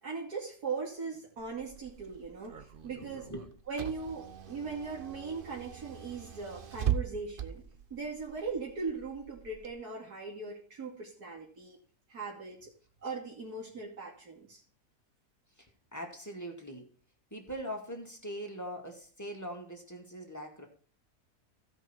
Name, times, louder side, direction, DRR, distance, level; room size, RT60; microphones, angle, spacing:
voice 1, 0.0-3.3 3.7-7.6 7.9-11.8 12.1-12.7 13.0-14.6, right 4 dB, 85° right, -3 dB, 3.1 m, -39 dB
Car / Engine, 1.4-9.7, right 9 dB, 45° right, 0.8 m, -40 dB
voice 2, 3.1-3.5 15.6-16.9 17.3-20.7, equal, 10° left, 1 dB, 2.1 m, -42 dB
16.0 x 5.5 x 4.4 m, 0.42 s
omnidirectional pair, 1.6 m